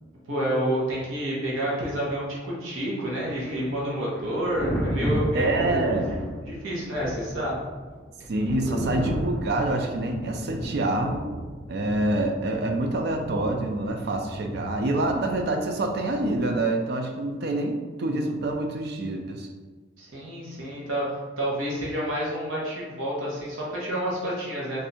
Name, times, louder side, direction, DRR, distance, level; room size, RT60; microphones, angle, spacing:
voice 1, 0.3-6.2 6.4-7.6 8.5-9.2 20.0-24.9, right 1 dB, 90° right, -5 dB, 1.1 m, -29 dB
Thunder, 3.1-16.8 18.4-18.6, equal, 5° left, 0.5 m, -34 dB
voice 2, 5.3-6.1 8.3-11.3 11.7-19.5, right 2 dB, 55° right, 3 dB, 0.4 m, -26 dB
3.4 x 2.7 x 4.1 m, 1.4 s
head